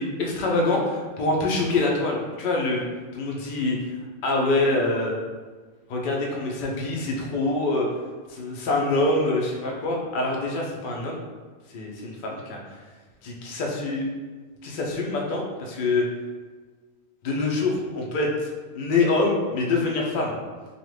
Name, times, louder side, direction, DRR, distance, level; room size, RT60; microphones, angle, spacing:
voice 1, 0.0-2.8 3.1-3.8 4.2-5.1 5.9-7.9 8.3-11.2 11.7-12.6 13.2-14.0 14.6-16.0 17.2-18.5 18.7-20.3, left 2 dB, 65° left, -1 dB, 0.5 m, -25 dB
2.6 x 2.4 x 3.2 m, 1.4 s
omnidirectional pair, 1.5 m